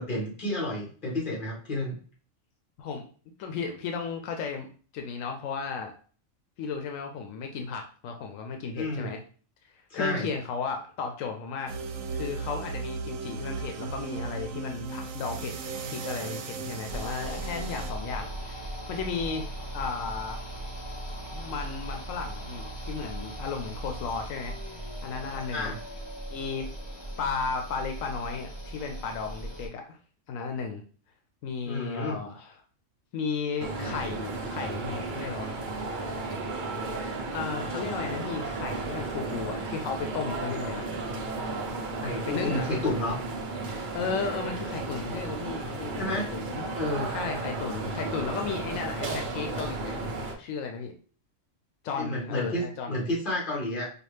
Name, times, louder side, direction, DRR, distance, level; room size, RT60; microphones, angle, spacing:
voice 1, 0.0-1.9 8.8-9.1 9.9-10.3 25.5-25.8 31.6-32.2 42.0-43.2 46.0-46.3 46.7-47.1 52.0-53.9, left 1 dB, 40° left, -3 dB, 1.6 m, -30 dB
voice 2, 3.4-4.7 4.9-5.9 6.6-9.2 9.9-11.7 12.1-20.4 21.3-25.7 26.3-26.7 27.2-30.0 30.3-30.8 31.4-32.5 33.1-35.5 37.3-40.9 42.3-42.6 43.9-46.7 47.1-50.9 51.8-53.0, left 5 dB, 85° left, 4 dB, 1.0 m, -34 dB
sound 1, 11.7-17.9, right 4 dB, 90° right, 1.0 m, -36 dB
sound 2, 16.9-29.7, right 1 dB, 20° left, 1.0 m, -38 dB
sound 3, 33.6-50.3, right 3 dB, 50° right, 0.7 m, -34 dB
4.9 x 2.4 x 3.2 m, 0.42 s
omnidirectional pair, 1.3 m